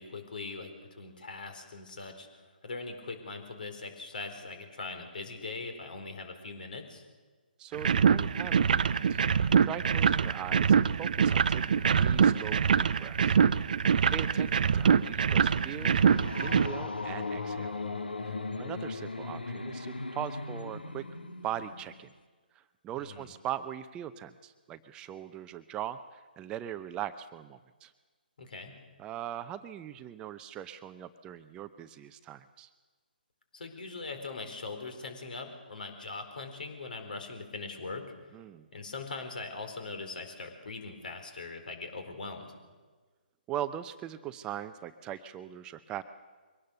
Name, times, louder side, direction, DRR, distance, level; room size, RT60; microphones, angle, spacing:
voice 1, 0.0-2.3 2.6-7.1 14.0-14.2 23.0-23.3 28.4-28.8 33.5-38.0 38.7-42.6, left 3 dB, 60° left, 6 dB, 4.4 m, -41 dB
voice 2, 7.6-9.2 9.6-13.4 14.1-17.7 18.2-21.0 21.4-22.1 22.5-27.9 29.0-32.7 38.3-38.7 43.5-46.0, right 11 dB, 15° right, 11 dB, 0.6 m, -40 dB
sound 1, 7.7-16.7, right 6 dB, 55° right, 0.7 m, -24 dB
Horror Sound, 14.8-22.1, left 3 dB, 85° left, 1.5 m, -38 dB
23.5 x 18.0 x 6.8 m, 1.4 s
figure-of-eight pair, 140°, 5 cm